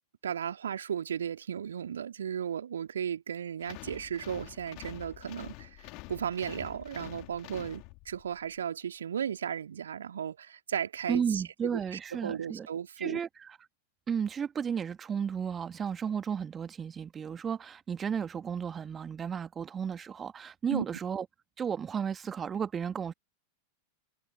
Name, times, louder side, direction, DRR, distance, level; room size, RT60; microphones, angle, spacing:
voice 1, 0.2-11.4 11.7-13.2 20.7-20.8, right 8 dB, 65° right, 3.1 m, -35 dB
sound 1, 3.6-8.3, left 27 dB, 40° left, 3.7 m, -47 dB
voice 2, 11.1-12.7 13.0-13.3 14.1-21.2 21.6-23.1, right 7 dB, 20° right, 1.8 m, -33 dB
figure-of-eight pair, 90°, 0 cm